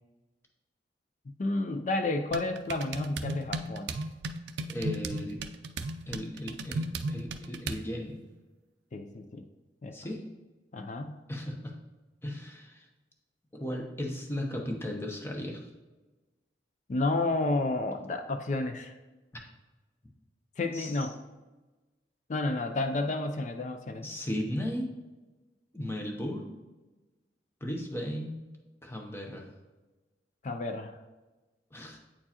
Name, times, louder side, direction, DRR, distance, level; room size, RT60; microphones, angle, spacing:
voice 1, 1.4-3.9 8.9-9.5 9.8-10.0 10.7-11.2 16.9-18.9 20.6-21.1 22.3-24.1 30.4-31.0, left 2 dB, 45° left, 6 dB, 0.4 m, -31 dB
sound 1, 2.3-7.9, right 2 dB, 80° right, 0.4 m, -36 dB
voice 2, 4.7-5.4 6.1-8.2 9.9-10.2 11.3-11.7 12.2-12.9 13.5-15.7 20.7-21.1 24.0-24.9 25.7-26.5 27.6-28.4 28.8-29.5 31.7-32.0, left 1 dB, 15° left, 1 dB, 0.8 m, -36 dB
8.6 x 4.5 x 2.9 m, 1.2 s
head